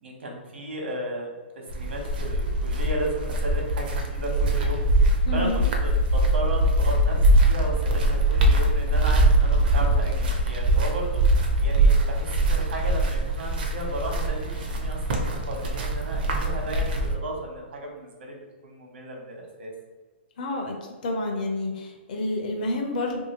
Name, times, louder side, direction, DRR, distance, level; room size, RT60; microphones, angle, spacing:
voice 1, 0.0-11.2 11.6-19.7, right 1 dB, 75° right, 0 dB, 1.0 m, -34 dB
sound 1, 1.7-17.1, right 1 dB, 50° right, 0.5 m, -22 dB
voice 2, 5.2-5.6 20.4-20.7 21.0-23.2, left 1 dB, 45° left, 1 dB, 0.6 m, -29 dB
2.7 x 2.6 x 2.9 m, 1.3 s
hypercardioid pair, 170°, 6 cm